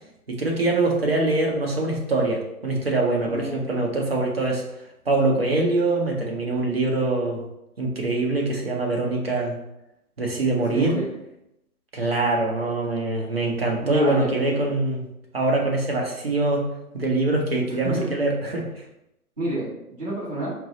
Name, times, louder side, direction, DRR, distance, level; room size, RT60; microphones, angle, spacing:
voice 1, 0.3-4.6 5.1-7.4 7.8-9.6 10.2-11.0 11.9-15.0 15.3-16.6 16.9-18.7, right 2 dB, 40° right, -1 dB, 0.7 m, -23 dB
voice 2, 3.2-3.8 10.7-11.1 13.8-14.6 17.8-18.2 19.4-20.5, right 1 dB, 25° right, -10 dB, 1.5 m, -29 dB
4.5 x 2.0 x 3.7 m, 0.85 s
hypercardioid pair, 170°, 45 cm